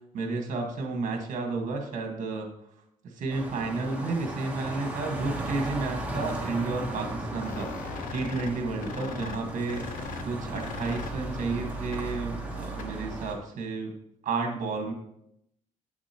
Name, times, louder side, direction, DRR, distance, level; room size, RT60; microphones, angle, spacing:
voice 1, 0.1-2.5 3.1-13.9 14.2-14.9, right 3 dB, 65° right, 3 dB, 1.5 m, -32 dB
sound 1, 3.3-13.3, right 1 dB, 10° right, 1.2 m, -36 dB
sound 2, 7.4-13.1, left 5 dB, 80° left, 0.8 m, -41 dB
8.0 x 6.9 x 2.9 m, 0.76 s
cardioid pair, 150°, 14 cm